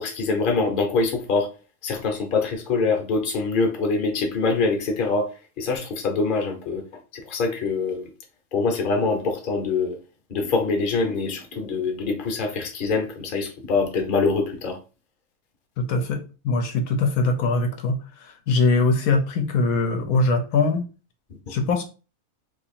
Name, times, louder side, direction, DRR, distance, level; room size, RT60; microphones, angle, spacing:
voice 1, 0.0-1.5 1.8-5.3 5.6-6.8 7.1-8.1 8.5-10.0 10.3-14.8, left 4 dB, 40° left, 0.9 m, -24 dB
voice 2, 15.8-18.0 18.5-20.8 21.5-21.8, left 3 dB, 80° left, 1.1 m, -22 dB
2.8 x 2.8 x 4.1 m
omnidirectional pair, 1.5 m